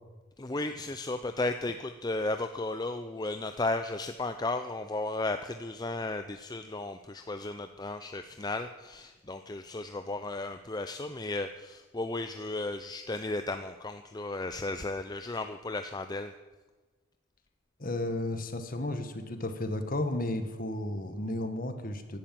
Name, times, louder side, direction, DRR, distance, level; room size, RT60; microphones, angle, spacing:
voice 1, 0.4-16.3, left 2 dB, 20° left, 8 dB, 0.5 m, -34 dB
voice 2, 17.8-22.2, left 1 dB, 40° left, 8 dB, 1.6 m, -33 dB
16.5 x 11.5 x 7.7 m, 1.3 s
head